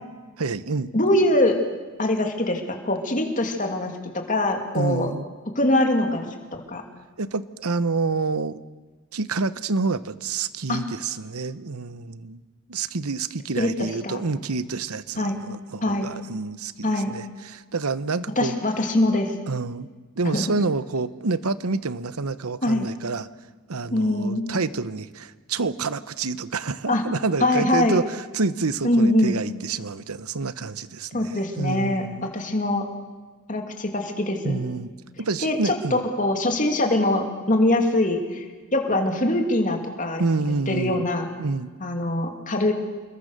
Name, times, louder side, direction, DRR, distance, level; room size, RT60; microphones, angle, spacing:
voice 1, 0.4-0.9 4.7-5.3 7.2-8.6 9.1-12.4 12.7-18.5 19.5-19.9 20.2-23.3 23.7-32.3 34.4-34.9 35.2-36.0 40.2-41.0 41.4-41.7, right 3 dB, 80° right, 14 dB, 0.9 m, -28 dB
voice 2, 0.9-1.5 2.0-5.1 5.5-6.3 6.7-6.8 10.7-10.8 13.6-14.2 15.2-15.4 15.8-16.1 16.8-17.1 18.4-19.3 20.2-20.5 22.6-22.9 23.9-24.4 26.8-27.0 27.4-28.0 28.8-29.4 31.1-32.8 33.5-34.6 35.4-35.7 36.2-38.4 38.7-40.2 40.7-41.3 41.8-42.7, left 1 dB, 35° left, 3 dB, 2.8 m, -23 dB
28.0 x 21.5 x 6.7 m, 1.4 s
head